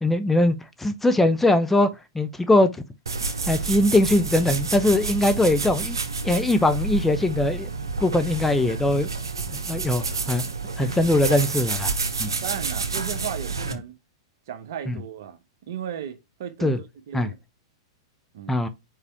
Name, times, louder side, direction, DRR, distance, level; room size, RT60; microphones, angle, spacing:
voice 1, 0.0-2.7 3.5-6.0 6.2-7.7 8.0-9.1 9.7-10.4 10.8-11.9 12.2-12.3 16.6-16.8 17.1-17.3 18.5-18.7, left 1 dB, 10° left, 0.6 m, -21 dB
sound 1, 3.1-13.7, right 4 dB, 75° right, 1.0 m, -29 dB
voice 2, 12.2-13.9 14.5-17.4 18.3-18.6, right 9 dB, 55° right, 1.2 m, -35 dB
4.9 x 4.8 x 4.6 m
figure-of-eight pair, 100°, 2 cm